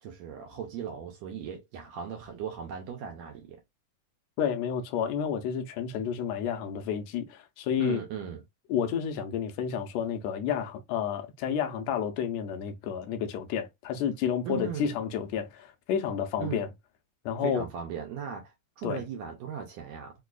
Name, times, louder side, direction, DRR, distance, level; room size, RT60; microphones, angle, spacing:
voice 1, 0.0-3.6 7.8-8.4 14.4-14.9 16.4-16.7 17.4-20.1, right 8 dB, 80° right, 1.6 m, -38 dB
voice 2, 4.4-8.0 8.7-16.7 17.2-17.6 18.8-19.0, left 8 dB, 80° left, 1.5 m, -30 dB
5.0 x 2.2 x 2.3 m
omnidirectional pair, 3.7 m